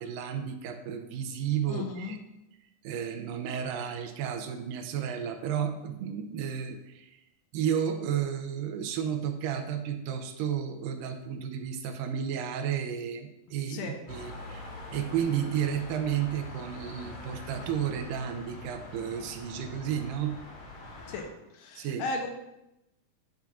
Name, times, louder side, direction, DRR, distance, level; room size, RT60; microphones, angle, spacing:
voice 1, 0.0-2.2 2.8-7.1 7.5-14.6 14.9-20.4 21.8-22.0, right 8 dB, 85° right, 7 dB, 2.3 m, -32 dB
voice 2, 1.7-2.2 13.7-14.0 21.1-21.3 21.5-22.3, left 3 dB, 80° left, 3 dB, 2.2 m, -35 dB
sound 1, 14.1-21.2, left 2 dB, 60° left, 2.6 m, -44 dB
9.1 x 5.7 x 2.4 m, 0.90 s
omnidirectional pair, 3.9 m